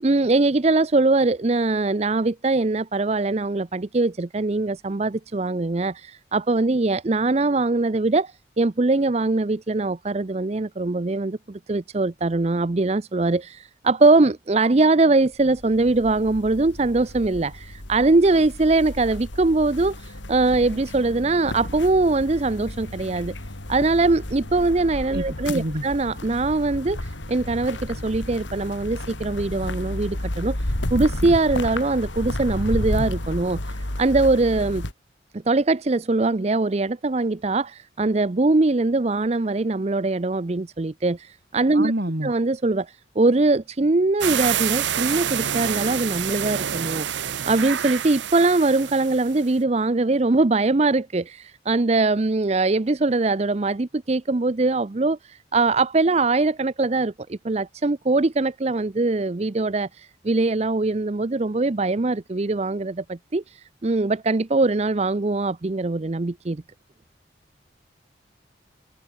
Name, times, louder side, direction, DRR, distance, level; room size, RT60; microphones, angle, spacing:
voice 1, 0.0-23.3 23.7-30.6 30.9-34.8 35.3-41.9 42.2-47.1 47.5-66.6, right 3 dB, 35° right, 0.6 m, -22 dB
sound 1, 15.3-34.9, left 1 dB, 80° left, 3.2 m, -32 dB
voice 2, 25.1-25.8 41.7-42.3, right 1 dB, 55° right, 2.8 m, -27 dB
sound 2, 44.2-49.4, right 9 dB, 75° right, 0.8 m, -27 dB
head